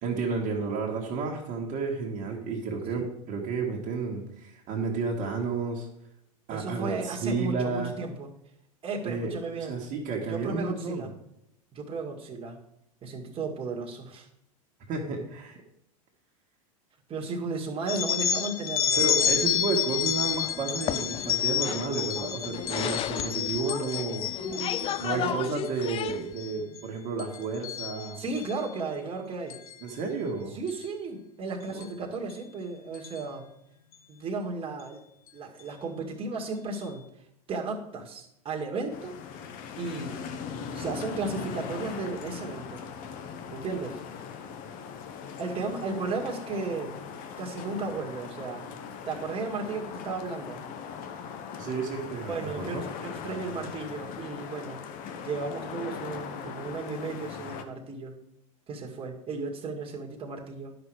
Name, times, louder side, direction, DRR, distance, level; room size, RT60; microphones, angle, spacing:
voice 1, 0.0-5.9 6.5-7.9 9.0-9.3 9.6-11.1 14.9-15.5 19.0-24.3 25.0-28.2 29.8-30.5 31.7-31.9 51.6-52.8, right 4 dB, 45° right, -1 dB, 1.9 m, -31 dB
voice 2, 6.5-8.3 8.8-9.8 10.3-11.1 11.7-12.6 13.0-14.3 17.1-19.3 24.4-25.3 26.6-26.7 28.2-29.6 30.5-33.5 34.1-35.0 35.3-37.0 37.5-39.2 39.8-40.2 40.7-42.8 43.5-44.0 45.4-47.0 47.4-48.7 49.1-50.6 52.3-54.8 55.2-58.2 58.7-60.7, right 3 dB, 30° right, 0 dB, 2.0 m, -34 dB
sound 1, 17.9-25.2 25.7-26.0 26.4-26.8 27.2-28.5 29.5-29.7 30.7-30.8 31.8-31.9 32.3-32.4 32.9-33.2, left 9 dB, 85° left, 0.7 m, -29 dB
sound 2, 19.0-26.3, left 11 dB, 30° left, 0.4 m, -35 dB
sound 3, 38.9-57.6, left 6 dB, 50° left, 1.1 m, -40 dB
10.5 x 6.0 x 4.9 m, 0.80 s
hypercardioid pair, 95°, 18 cm